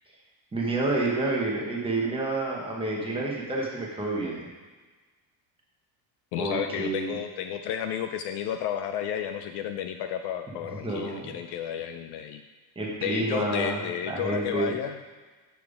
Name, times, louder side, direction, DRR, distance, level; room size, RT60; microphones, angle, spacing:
voice 1, 0.5-4.5 6.4-7.1 10.8-11.3 12.7-14.7, right 2 dB, 10° right, -3 dB, 1.1 m, -29 dB
voice 2, 6.3-12.4 13.0-15.0, left 9 dB, 55° left, 7 dB, 0.5 m, -32 dB
7.0 x 5.9 x 4.9 m, 1.3 s
cardioid pair, 175°, 48 cm